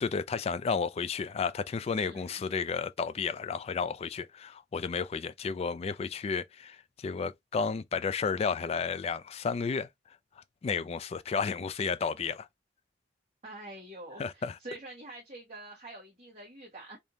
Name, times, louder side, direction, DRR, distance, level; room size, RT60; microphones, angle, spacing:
voice 1, 0.0-9.9 10.4-12.5 14.2-14.6, left 5 dB, 35° left, 0.3 m, -32 dB
voice 2, 2.0-2.4 13.4-17.0, right 2 dB, 40° right, 1.3 m, -46 dB
3.4 x 2.7 x 2.7 m
head